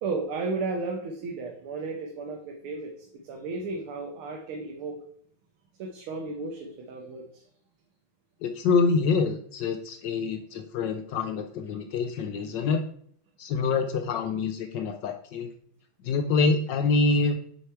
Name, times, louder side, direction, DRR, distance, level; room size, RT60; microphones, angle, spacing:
voice 1, 0.0-5.0 5.8-7.4, right 3 dB, 90° right, 2 dB, 1.8 m, -34 dB
voice 2, 8.4-12.8 13.4-15.5 16.0-17.4, left 4 dB, 70° left, 6 dB, 1.1 m, -26 dB
6.6 x 4.9 x 4.4 m, 0.63 s
omnidirectional pair, 2.3 m